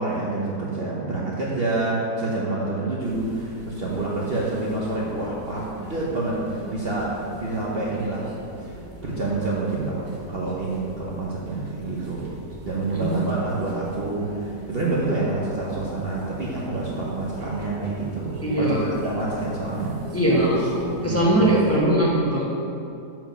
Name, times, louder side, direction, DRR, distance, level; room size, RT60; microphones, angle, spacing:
voice 1, 0.0-8.3 8.6-8.8 9.0-12.3 12.6-20.0 20.8-21.4, right 2 dB, 45° right, -6 dB, 1.0 m, -27 dB
sound 1, 3.0-21.8, equal, 70° right, 1.6 m, -41 dB
voice 2, 12.9-13.3 18.4-18.9 20.1-20.6 21.0-22.4, right 1 dB, 10° left, -6 dB, 1.1 m, -20 dB
7.5 x 4.8 x 5.4 m, 2.6 s
omnidirectional pair, 1.7 m